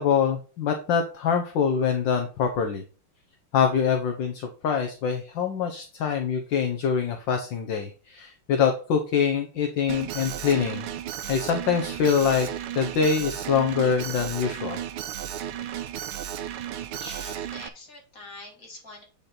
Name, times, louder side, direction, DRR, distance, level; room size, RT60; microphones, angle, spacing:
voice 1, 0.0-2.8 3.5-10.8 11.3-12.5 12.7-14.8, left 7 dB, 70° left, 5 dB, 1.5 m, -24 dB
Alarm, 9.9-17.7, right 10 dB, 90° right, 1.5 m, -34 dB
voice 2, 16.9-19.0, left 2 dB, 40° left, 0 dB, 2.6 m, -44 dB
8.1 x 5.3 x 4.3 m, 0.37 s
omnidirectional pair, 2.3 m